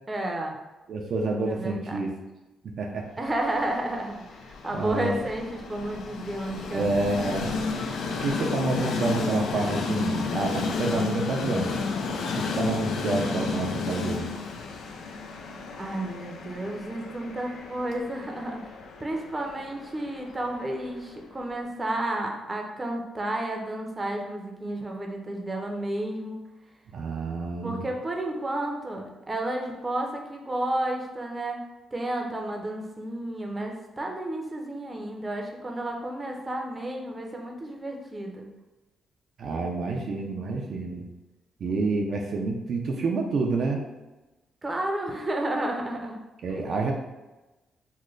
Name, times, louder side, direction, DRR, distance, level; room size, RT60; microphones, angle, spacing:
voice 1, 0.1-0.6 1.5-2.1 3.2-6.9 15.8-18.7 19.0-26.4 27.6-31.6 31.9-38.5 44.6-46.2, right 1 dB, 25° right, 1 dB, 0.6 m, -32 dB
voice 2, 0.9-2.1 2.8-3.0 4.7-5.2 6.7-7.5 8.2-11.8 12.3-14.2 26.9-27.8 39.4-41.1 41.6-43.8 46.4-46.9, right 3 dB, 65° right, 1 dB, 0.4 m, -28 dB
Train, 3.3-21.4, left 4 dB, 85° left, 0.4 m, -32 dB
3.1 x 2.1 x 3.7 m, 1.1 s
cardioid pair, 80°, 0 cm